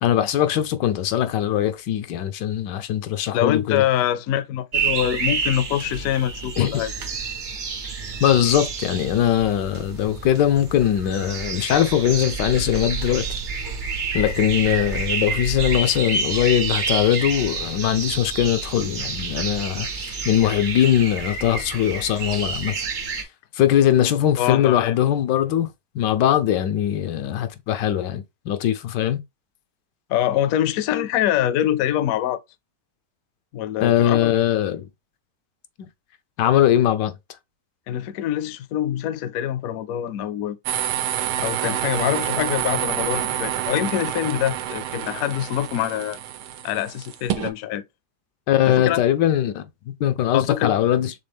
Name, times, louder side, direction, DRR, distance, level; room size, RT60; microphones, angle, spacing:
voice 1, 0.0-3.8 6.6-6.8 8.2-13.2 14.1-22.8 23.5-25.7 25.9-29.2 33.8-34.9 35.8-35.9 36.4-37.1 48.5-51.1, left 11 dB, 90° left, 1.3 m, -21 dB
voice 2, 3.3-6.9 24.4-24.9 30.1-32.4 33.5-34.3 37.9-40.6 41.4-46.2 46.6-47.8 48.7-49.0 50.3-50.7, left 11 dB, 70° left, 0.9 m, -24 dB
sound 1, 4.7-23.2, right 5 dB, 50° right, 0.6 m, -29 dB
sound 2, 40.7-47.5, right 12 dB, 90° right, 1.2 m, -27 dB
4.2 x 3.4 x 3.4 m
omnidirectional pair, 1.8 m